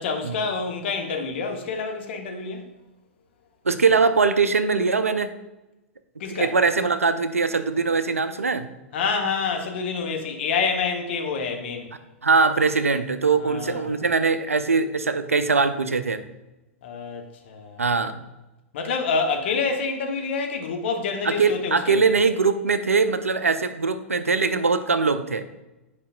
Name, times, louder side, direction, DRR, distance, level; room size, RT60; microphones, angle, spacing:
voice 1, 0.0-2.7 6.2-6.5 8.9-11.9 13.4-14.0 16.8-17.8 18.7-22.1, left 5 dB, 50° left, 3 dB, 1.0 m, -27 dB
voice 2, 3.7-5.3 6.3-8.7 12.2-16.2 17.8-18.2 21.2-25.4, right 4 dB, 80° right, 11 dB, 0.4 m, -21 dB
8.3 x 5.0 x 2.3 m, 1.0 s
figure-of-eight pair, 100°, 7 cm